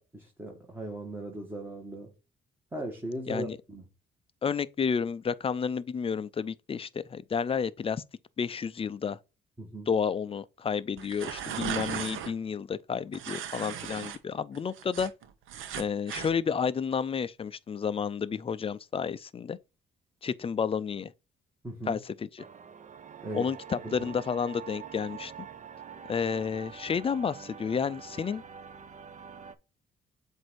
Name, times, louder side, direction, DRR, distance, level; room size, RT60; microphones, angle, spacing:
voice 1, 0.0-2.1 2.7-3.8 9.6-9.9 21.6-22.0 23.2-23.5 23.8-24.1, right 1 dB, 10° right, 1.6 m, -38 dB
voice 2, 3.3-3.6 4.4-8.0 8.4-9.2 9.9-15.1 15.8-19.6 20.2-21.1 21.9-22.4 23.3-25.3 26.1-28.4, left 6 dB, 30° left, 0.4 m, -31 dB
sound 1, 11.0-12.3 13.1-14.2 14.5-16.3, right 9 dB, 85° right, 0.8 m, -37 dB
sound 2, 22.4-29.6, right 7 dB, 40° right, 0.6 m, -46 dB
7.7 x 2.7 x 4.6 m
cardioid pair, 90°, 20 cm